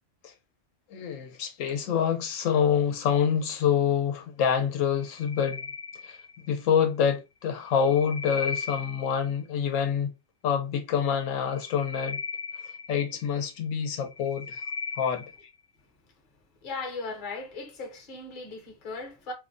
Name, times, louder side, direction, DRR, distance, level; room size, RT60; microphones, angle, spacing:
voice 1, 0.9-5.7 6.0-6.2 6.5-10.1 10.4-12.2 12.9-14.6 15.0-15.3, left 7 dB, 85° left, 1.0 m, -26 dB
sound 1, 5.0-6.6 7.6-9.4 11.4-13.5 14.0-15.5, left 4 dB, 65° left, 0.4 m, -37 dB
voice 2, 16.6-19.3, left 3 dB, 45° left, 0.8 m, -37 dB
2.5 x 2.1 x 2.4 m
omnidirectional pair, 1.3 m